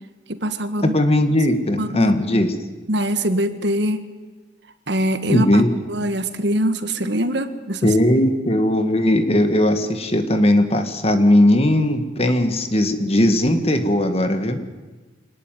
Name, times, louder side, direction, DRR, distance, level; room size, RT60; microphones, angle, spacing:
voice 1, 0.3-0.9 1.5-2.5 2.9-4.0 4.9-5.6 5.9-8.3, right 1 dB, 60° right, 10 dB, 1.6 m, -23 dB
voice 2, 0.8-2.5 5.3-5.7 7.8-14.6, left 1 dB, 30° left, 8 dB, 1.9 m, -18 dB
24.5 x 19.5 x 9.3 m, 1.3 s
head